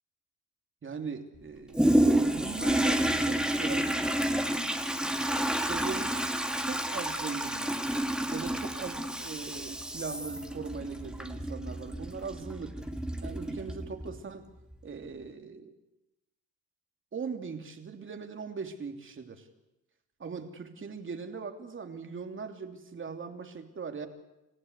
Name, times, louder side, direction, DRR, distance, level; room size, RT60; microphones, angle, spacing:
voice 1, 0.8-2.0 2.2-3.9 5.6-6.2 6.6-7.8 8.3-12.8 13.2-14.5 14.8-15.7 17.1-19.5 20.2-24.1, right 5 dB, 40° right, 5 dB, 3.0 m, -40 dB
Toilet flush, 1.7-14.2 14.7-14.8, right 1 dB, 5° right, 2.2 m, -30 dB
28.5 x 15.0 x 8.3 m, 0.95 s
cardioid pair, 90°, 30 cm